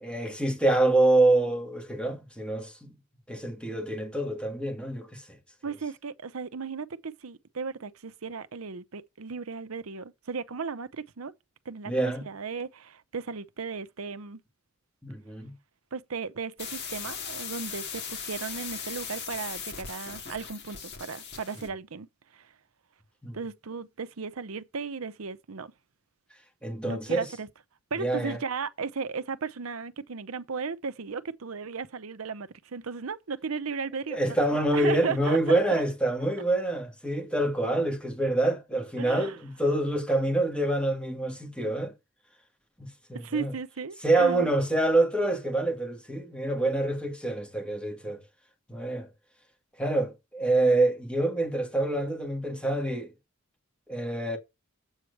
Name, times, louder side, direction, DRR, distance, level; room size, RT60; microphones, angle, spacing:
voice 1, 0.0-2.9 3.3-5.2 11.9-12.3 15.0-15.5 23.2-23.4 26.6-27.3 28.0-28.4 34.1-41.9 42.8-43.5 44.0-48.2 48.7-49.1 49.8-53.1 53.9-54.4, right 2 dB, 5° left, 2.0 m, -26 dB
voice 2, 5.6-11.3 11.7-11.9 12.2-14.4 15.9-22.1 22.3-22.5 23.3-25.7 26.8-27.5 27.9-35.8 39.0-39.4 43.1-44.5, right 5 dB, 80° right, 0.7 m, -35 dB
sound 1, 16.6-21.7, left 6 dB, 55° left, 2.5 m, -38 dB
8.1 x 4.6 x 6.6 m
head